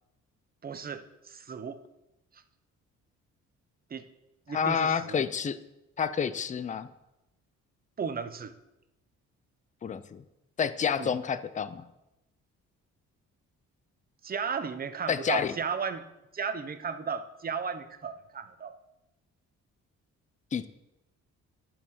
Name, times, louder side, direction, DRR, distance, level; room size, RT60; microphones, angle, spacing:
voice 1, 0.6-1.8 3.9-4.0 4.5-5.2 8.0-8.5 11.0-11.1 14.2-16.1 16.3-18.8, right 6 dB, 30° right, 10 dB, 0.8 m, -35 dB
voice 2, 4.5-5.6 6.0-6.9 9.8-10.2 10.6-11.9 15.1-15.5 20.5-20.7, left 7 dB, 25° left, 13 dB, 0.5 m, -29 dB
9.7 x 4.7 x 7.7 m, 0.94 s
cardioid pair, 90°, 30 cm